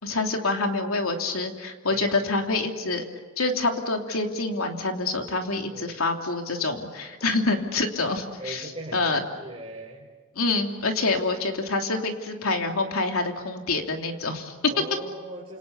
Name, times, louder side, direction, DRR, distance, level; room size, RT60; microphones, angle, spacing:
voice 1, 0.0-3.0 3.4-9.2 10.3-14.5, left 3 dB, 80° left, 3 dB, 3.1 m, -27 dB
voice 2, 1.9-2.2 5.7-6.0 7.1-7.4 8.4-10.1 14.7-15.6, right 1 dB, 25° right, -3 dB, 3.5 m, -40 dB
29.5 x 27.5 x 7.0 m, 1.3 s
head